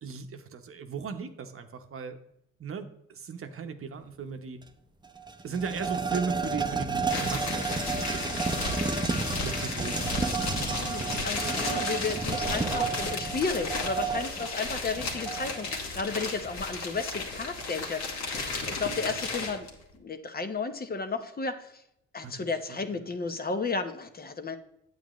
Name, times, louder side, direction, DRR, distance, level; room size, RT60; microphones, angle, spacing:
voice 1, 0.0-2.2 2.6-4.6 5.4-8.4 9.1-10.1 22.2-22.3 22.7-22.8, right 5 dB, 45° right, 7 dB, 0.9 m, -37 dB
sound 1, 4.6-4.7 5.0-15.7, right 4 dB, 15° right, 0.7 m, -32 dB
sound 2, 7.0-19.7, left 3 dB, 65° left, 2.0 m, -34 dB
voice 2, 10.6-19.7 19.9-21.8 22.1-24.6, left 4 dB, 30° left, 8 dB, 0.9 m, -33 dB
8.9 x 8.2 x 3.1 m, 0.79 s
cardioid pair, 90°, 30 cm